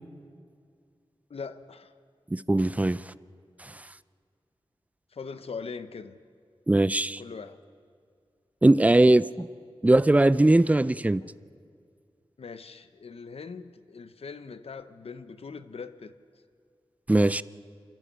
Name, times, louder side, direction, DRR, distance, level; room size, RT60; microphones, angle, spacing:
voice 1, 1.3-1.9 5.1-6.2 7.2-7.6 12.4-16.1, left 5 dB, 80° left, 11 dB, 0.8 m, -41 dB
voice 2, 2.3-3.0 6.7-7.2 8.6-9.5 9.8-11.2 17.1-17.4, right 2 dB, 15° right, 17 dB, 0.4 m, -20 dB
28.5 x 14.0 x 7.5 m, 2.2 s
wide cardioid pair, 70°, 10 cm